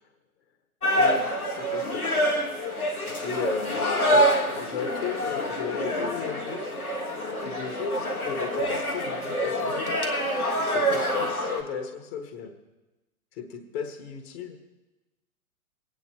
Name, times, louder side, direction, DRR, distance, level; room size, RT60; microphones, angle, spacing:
sound 1, 0.8-11.6, equal, 90° left, 1.6 m, -26 dB
voice 1, 1.5-2.0 3.2-6.7 7.4-10.0 10.6-12.5 13.3-14.6, left 6 dB, 45° left, 6 dB, 1.3 m, -34 dB
25.5 x 9.4 x 2.9 m, 1.1 s
figure-of-eight pair, 110°, 42 cm